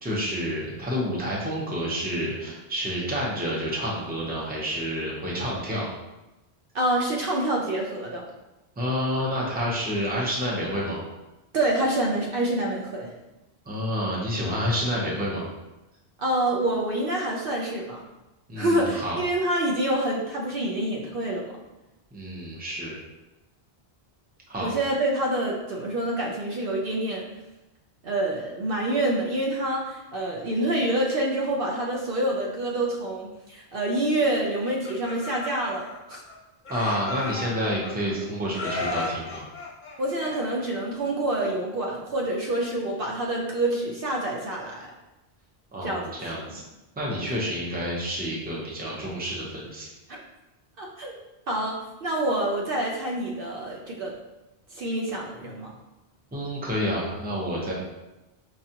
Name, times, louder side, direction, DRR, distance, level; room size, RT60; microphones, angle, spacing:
voice 1, 0.0-5.9 8.8-11.0 13.7-15.4 18.5-19.2 22.1-23.0 24.5-24.7 36.7-39.4 45.7-46.6 47.0-49.9 56.3-57.7, equal, 10° right, -4 dB, 0.6 m, -29 dB
voice 2, 6.7-8.2 11.5-13.1 16.2-18.0 18.6-21.5 24.6-27.2 28.0-36.2 40.0-44.9 45.8-46.1 46.5-46.6 50.1-50.2 50.8-51.2 51.5-54.1 54.7-55.7, right 1 dB, 65° right, -2 dB, 0.7 m, -27 dB
Laughter, 34.6-36.3 36.6-38.1 38.5-40.8, left 3 dB, 50° left, 0.7 m, -34 dB
4.8 x 2.4 x 2.8 m, 1.0 s
omnidirectional pair, 1.1 m